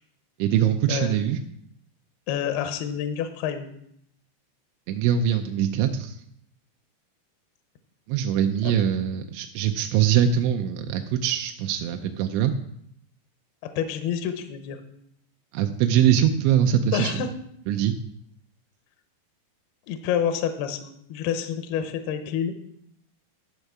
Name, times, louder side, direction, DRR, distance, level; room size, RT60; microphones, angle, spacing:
voice 1, 0.4-1.4 4.9-6.2 8.1-12.5 15.5-17.2 17.7-17.9, right 9 dB, 90° right, 5 dB, 3.0 m, -22 dB
voice 2, 2.3-3.7 8.6-8.7 13.6-14.8 16.9-17.3 19.9-22.5, left 8 dB, 80° left, 8 dB, 2.4 m, -28 dB
11.5 x 6.6 x 4.7 m, 0.71 s
omnidirectional pair, 5.3 m